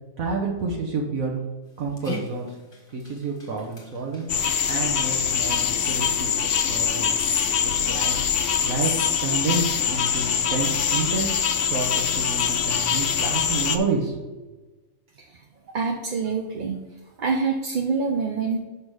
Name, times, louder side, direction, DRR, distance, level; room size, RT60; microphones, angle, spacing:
voice 1, 0.2-1.4 1.8-2.5 2.9-4.3 4.7-7.1 7.6-8.2 8.6-8.9 9.2-14.4, right 4 dB, 75° right, 0 dB, 1.4 m, -29 dB
Dog, 1.6-7.0, left 2 dB, 25° left, 1.2 m, -44 dB
sound 1, 4.3-13.8, left 7 dB, 60° left, 0.6 m, -24 dB
voice 2, 15.7-16.8 17.2-18.6, right 4 dB, 50° right, 1 dB, 0.7 m, -26 dB
5.9 x 5.5 x 4.7 m, 1.2 s
omnidirectional pair, 1.4 m